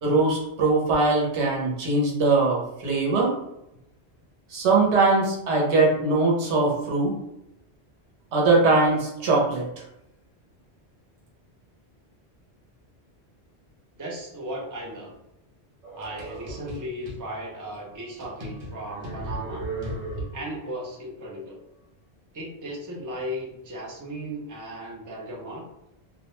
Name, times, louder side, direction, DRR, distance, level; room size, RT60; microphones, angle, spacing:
voice 1, 0.0-3.3 4.5-7.1 8.3-9.6, right 3 dB, 90° right, -2 dB, 1.0 m, -21 dB
voice 2, 14.0-15.1 16.0-19.7 20.3-21.6 22.3-25.7, right 1 dB, 25° right, -3 dB, 0.5 m, -36 dB
sound 1, 15.8-17.2 17.7-17.8 18.2-20.6, right 2 dB, 55° right, 0.8 m, -36 dB
2.3 x 2.1 x 2.9 m, 0.84 s
omnidirectional pair, 1.1 m